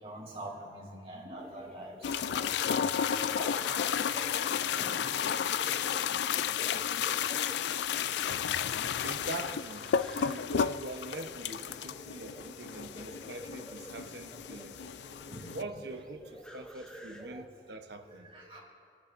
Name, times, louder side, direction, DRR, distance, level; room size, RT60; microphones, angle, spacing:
voice 1, 0.0-2.5 3.0-3.5 4.7-5.1 8.7-8.8 15.3-15.5 17.3-17.4 18.1-18.6, right 1 dB, 35° right, 2.9 m, -45 dB
sound 1, 1.4-17.5, equal, 5° left, 0.7 m, -50 dB
sound 2, 2.0-15.6, left 8 dB, 75° left, 0.3 m, -32 dB
voice 2, 9.0-14.9 15.5-18.3, right 2 dB, 70° right, 0.9 m, -43 dB
27.5 x 10.5 x 2.6 m
head